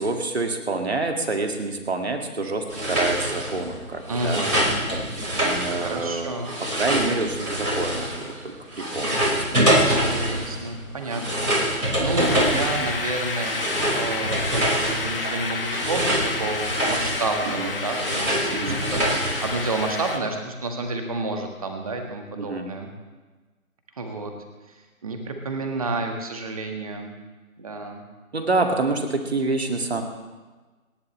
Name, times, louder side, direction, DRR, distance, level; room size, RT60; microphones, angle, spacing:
voice 1, 0.0-4.4 5.4-6.3 6.7-9.8 17.5-17.7 18.5-18.8 22.4-22.7 28.3-30.0, right 3 dB, 45° right, 4 dB, 2.3 m, -27 dB
sound 1, 2.7-8.5 8.7-19.9, right 1 dB, 85° right, 5.2 m, -25 dB
voice 2, 4.1-4.6 5.7-6.5 9.8-22.9 24.0-24.3 24.7-27.1 27.6-28.0, right 2 dB, 25° right, 4 dB, 1.7 m, -30 dB
sound 2, 12.2-20.2, left 3 dB, 40° left, 1.6 m, -30 dB
29.5 x 11.0 x 3.3 m, 1.3 s
figure-of-eight pair, 155°, 43 cm